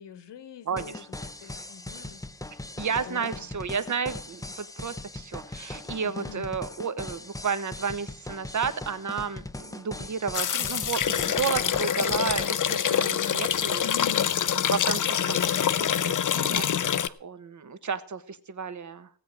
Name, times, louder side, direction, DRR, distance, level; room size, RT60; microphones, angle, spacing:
voice 1, 0.0-2.2 3.0-3.5 6.0-6.5 13.8-14.4, left 8 dB, 75° left, 13 dB, 1.4 m, -42 dB
voice 2, 0.7-1.1 2.8-13.9 14.5-19.1, right 6 dB, 45° right, 13 dB, 1.2 m, -32 dB
sound 1, 0.8-12.5, left 2 dB, 10° left, 0.7 m, -40 dB
sound 2, 10.3-17.1, left 9 dB, 45° left, 0.7 m, -25 dB
17.0 x 8.5 x 6.3 m, 0.43 s
wide cardioid pair, 120°, 43 cm